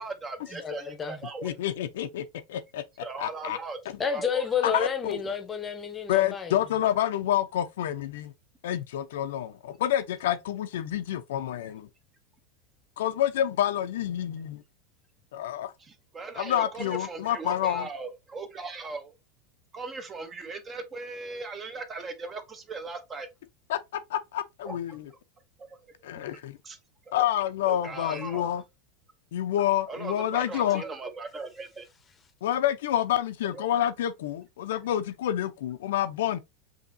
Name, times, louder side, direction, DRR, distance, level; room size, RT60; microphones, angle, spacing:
voice 1, 0.0-1.5 3.0-3.8 4.1-4.5 15.8-19.2 19.7-23.3 24.6-25.0 25.6-25.9 26.6-26.8 27.1-27.3 27.7-28.4 29.9-31.9 33.5-33.6, right 3 dB, 20° right, 0.7 m, -39 dB
voice 2, 0.6-1.2 4.0-6.6, left 6 dB, 20° left, 0.8 m, -30 dB
voice 3, 1.4-2.8 3.2-3.6 4.6-5.2 6.1-8.3 8.6-11.9 13.0-14.6 15.3-15.7 16.4-17.9 23.7-25.1 26.0-26.6 27.1-28.6 29.3-30.8 32.4-36.4, left 11 dB, 80° left, 0.5 m, -28 dB
5.4 x 2.8 x 2.6 m
supercardioid pair, 140°, 0 cm